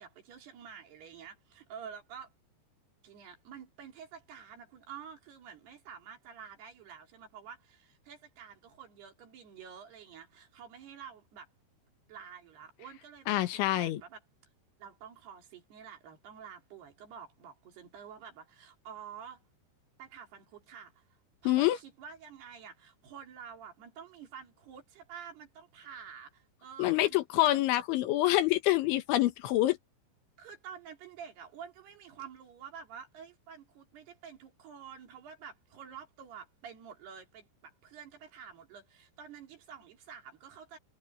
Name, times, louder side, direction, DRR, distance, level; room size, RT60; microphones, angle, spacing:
voice 1, 0.0-2.3 3.0-11.5 12.1-14.2 14.8-19.4 20.0-21.0 21.4-27.5 30.4-40.8, right 7 dB, 60° right, 5.1 m, -49 dB
voice 2, 13.3-14.0 21.5-21.8 26.8-29.8, left 16 dB, 85° left, 3.7 m, -26 dB
omnidirectional pair, 5.3 m